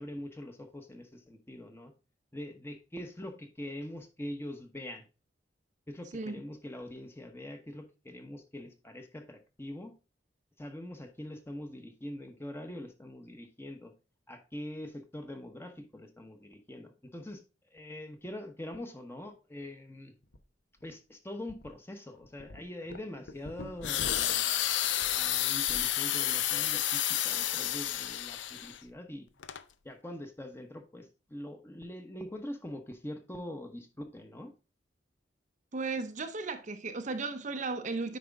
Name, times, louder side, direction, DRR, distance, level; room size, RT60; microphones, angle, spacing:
voice 1, 0.0-1.9 2.3-5.0 5.9-9.9 10.6-13.9 14.3-17.4 17.7-20.1 20.8-24.4 25.0-29.3 29.8-34.5, left 1 dB, 15° left, 1.0 m, -43 dB
sound 1, 20.2-20.4 20.8-20.9 21.5-21.7 22.1-26.0 26.3-26.7, left 2 dB, 60° left, 0.9 m, -45 dB
sound 2, 23.8-28.8 29.4-29.6, left 12 dB, 80° left, 0.5 m, -30 dB
voice 2, 35.7-38.2, right 3 dB, 40° right, 0.6 m, -35 dB
9.3 x 5.0 x 3.5 m
head